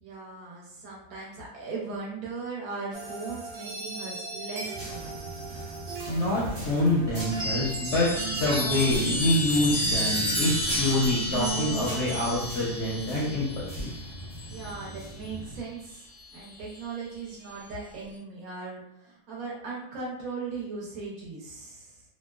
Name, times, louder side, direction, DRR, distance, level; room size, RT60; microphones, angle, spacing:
voice 1, 0.0-5.2 14.5-22.0, right 4 dB, 65° right, -4 dB, 1.1 m, -38 dB
sound 1, 2.9-12.3, right 3 dB, 90° right, 1.2 m, -37 dB
sound 2, 4.8-15.6, right 1 dB, 45° right, 0.5 m, -40 dB
voice 2, 6.1-13.5 13.7-13.9, left 1 dB, 60° left, -7 dB, 0.7 m, -26 dB
Chime, 7.1-15.0 16.2-16.8, left 1 dB, 25° left, 0.5 m, -31 dB
2.9 x 2.1 x 2.3 m, 0.78 s
omnidirectional pair, 1.8 m